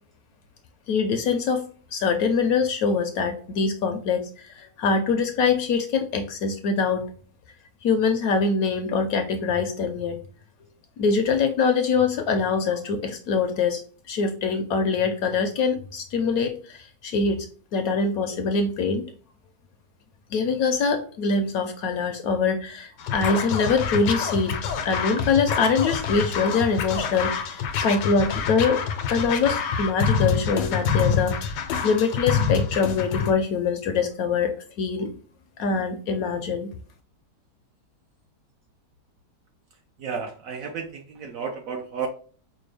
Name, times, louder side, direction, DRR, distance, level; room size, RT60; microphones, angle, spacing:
voice 1, 0.9-1.6 1.9-7.1 7.8-10.2 11.0-13.8 14.1-17.5 17.7-19.0 20.3-24.6 24.8-28.8 29.1-35.1 35.6-36.7, left 5 dB, 70° left, 7 dB, 0.9 m, -24 dB
Scratching (performance technique), 23.0-33.3, left 6 dB, 85° left, 1.3 m, -26 dB
voice 2, 40.0-42.1, right 6 dB, 70° right, 4 dB, 0.8 m, -32 dB
5.1 x 2.2 x 3.2 m, 0.41 s
omnidirectional pair, 1.8 m